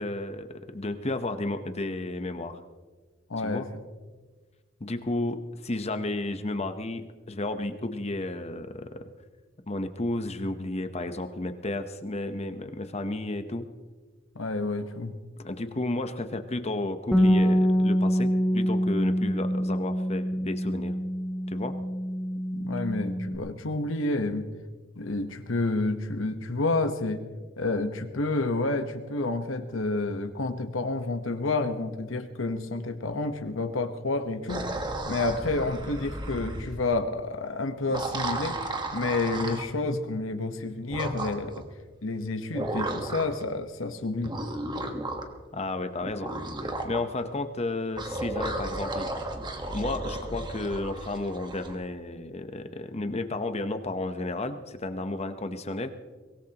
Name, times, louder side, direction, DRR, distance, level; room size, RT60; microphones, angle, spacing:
voice 1, 0.0-2.6 3.4-3.7 4.8-9.1 9.7-13.7 15.4-20.9 21.5-21.8 45.5-46.3 46.8-49.1 49.7-55.9, left 2 dB, 35° left, 8 dB, 0.9 m, -32 dB
voice 2, 3.3-3.6 14.3-15.1 22.5-24.4 25.0-27.2 27.6-34.6 35.1-41.6 42.0-44.3, left 2 dB, 80° left, 7 dB, 1.1 m, -29 dB
Bass guitar, 17.1-23.4, equal, ahead, 1.2 m, -25 dB
sound 1, 34.5-36.8 37.8-39.7 40.9-41.6 42.5-43.4 44.2-45.4 46.0-47.0 48.0-51.7, right 2 dB, 25° right, 1.4 m, -34 dB
23.5 x 18.5 x 3.0 m, 1.4 s
head